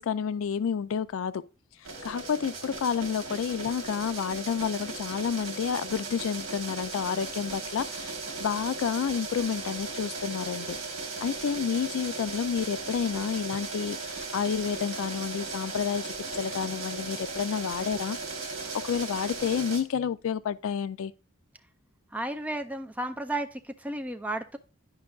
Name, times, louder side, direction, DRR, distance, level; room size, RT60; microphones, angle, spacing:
voice 1, 0.0-1.4 2.0-8.1 8.4-10.8 11.2-18.2 18.8-21.1, left 7 dB, 75° left, 0.3 m, -30 dB
sound 1, 1.8-19.8, right 4 dB, 75° right, 1.4 m, -37 dB
voice 2, 22.1-24.6, right 1 dB, 5° right, 0.3 m, -33 dB
10.5 x 5.2 x 2.3 m
head